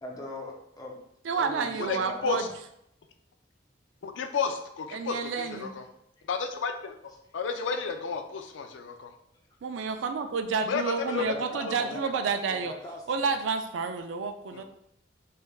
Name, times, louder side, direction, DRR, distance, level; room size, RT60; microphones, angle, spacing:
voice 1, 0.0-1.0 1.3-2.5 9.9-10.0 11.0-13.3, left 1 dB, 20° left, -1 dB, 0.6 m, -40 dB
voice 2, 1.2-2.5 4.9-5.8 9.6-12.7 13.1-14.6, right 5 dB, 85° right, 7 dB, 0.4 m, -30 dB
voice 3, 4.0-5.8 6.3-6.9 7.3-9.1 10.7-11.4 11.6-11.7 14.5-14.6, left 5 dB, 80° left, 6 dB, 0.4 m, -32 dB
3.3 x 3.2 x 2.3 m, 0.76 s
head